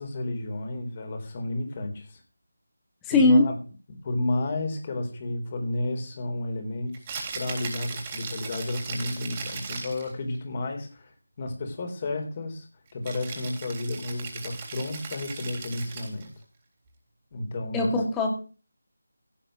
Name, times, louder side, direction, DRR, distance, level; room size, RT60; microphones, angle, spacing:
voice 1, 0.0-2.2 3.1-3.5 4.0-7.0 7.3-11.1 11.4-12.7 12.9-16.3 17.3-17.9, left 2 dB, 25° left, 5 dB, 3.9 m, -32 dB
voice 2, 3.0-3.5 17.7-18.3, left 2 dB, 10° left, 2 dB, 2.4 m, -19 dB
Rattle (instrument), 6.9-10.1 13.0-16.3, right 4 dB, 20° right, 3.5 m, -38 dB
16.5 x 7.8 x 6.6 m, 0.36 s
figure-of-eight pair, 160°, 0 cm